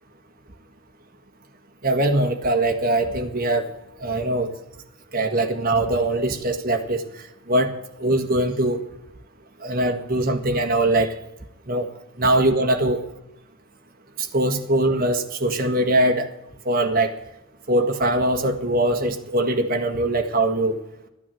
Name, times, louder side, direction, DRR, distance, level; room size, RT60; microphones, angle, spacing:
voice 1, 1.8-3.7 4.0-4.5 5.1-7.0 7.5-7.7 8.0-8.8 9.6-11.1 11.7-11.9 12.2-13.0 14.2-16.3 16.6-17.2 17.7-20.8, right 1 dB, 45° right, 4 dB, 1.6 m, -21 dB
13.5 x 9.8 x 7.8 m, 0.87 s
head